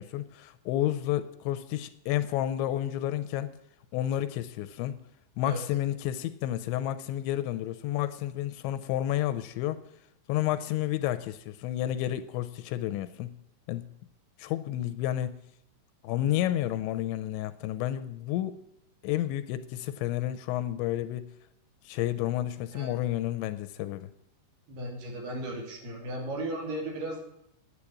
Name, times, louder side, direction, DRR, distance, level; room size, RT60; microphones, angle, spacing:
voice 1, 0.0-3.5 3.9-5.0 5.4-9.8 10.3-13.3 13.7-13.9 14.4-15.4 16.0-18.6 19.0-21.3 21.9-24.1, left 13 dB, 80° left, 12 dB, 2.8 m, -30 dB
voice 2, 24.7-27.2, right 1 dB, 60° right, 0 dB, 4.9 m, -35 dB
10.5 x 9.9 x 8.4 m, 0.75 s
omnidirectional pair, 5.4 m